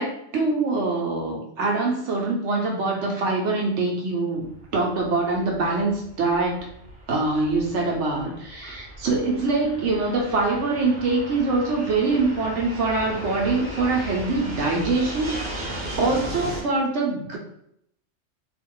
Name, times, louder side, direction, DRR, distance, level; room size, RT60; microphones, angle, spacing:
voice 1, 0.0-4.5 4.7-6.7 7.1-17.4, right 3 dB, 75° right, 0 dB, 1.0 m, -24 dB
Fixed-wing aircraft airplane, 4.4-16.6, right 1 dB, 50° right, 0.9 m, -37 dB
2.4 x 2.4 x 3.6 m, 0.73 s
omnidirectional pair, 1.2 m